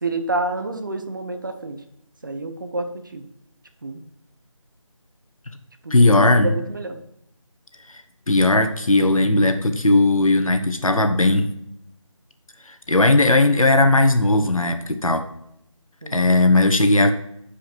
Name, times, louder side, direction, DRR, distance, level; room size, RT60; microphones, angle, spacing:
voice 1, 0.0-1.8 2.2-3.3 3.8-4.0 5.8-7.0 16.0-16.2, right 2 dB, 35° right, 6 dB, 0.9 m, -28 dB
voice 2, 5.9-6.5 7.9-8.0 8.3-11.5 12.7-15.3 16.1-17.1, left 2 dB, 75° left, 7 dB, 1.2 m, -17 dB
11.5 x 5.0 x 4.4 m, 0.78 s
figure-of-eight pair, 165°, 17 cm